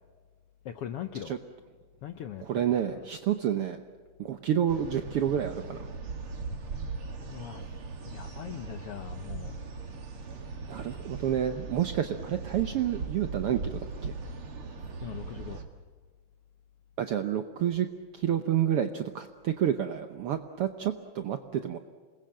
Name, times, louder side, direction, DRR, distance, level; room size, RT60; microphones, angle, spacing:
voice 1, 0.6-1.4 2.0-2.4 2.9-3.0 7.2-7.7 8.1-9.5 15.0-15.6, left 10 dB, 75° left, 8 dB, 1.4 m, -40 dB
voice 2, 2.4-3.8 4.2-5.8 10.7-14.1 17.0-17.9 18.1-21.8, right 10 dB, 75° right, 8 dB, 1.3 m, -29 dB
sound 1, 4.7-15.6, right 4 dB, 45° right, 2.6 m, -39 dB
27.5 x 20.5 x 7.6 m, 1.5 s
omnidirectional pair, 3.6 m